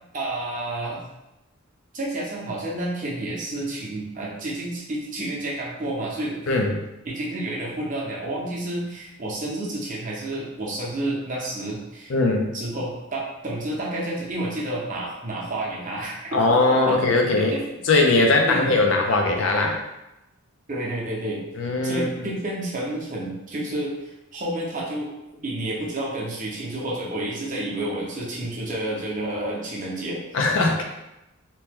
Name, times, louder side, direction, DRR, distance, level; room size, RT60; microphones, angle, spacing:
voice 1, 0.1-1.0 1.9-6.4 7.0-12.1 12.5-16.4 16.7-17.0 17.5-17.6 18.5-18.9 20.7-21.4 21.8-25.1 25.4-30.2, right 1 dB, 35° right, -4 dB, 0.7 m, -30 dB
voice 2, 12.1-12.6 16.3-17.5 17.9-19.8 21.6-22.1 30.3-30.8, left 2 dB, 60° left, 2 dB, 0.4 m, -20 dB
2.9 x 2.1 x 3.4 m, 0.92 s
head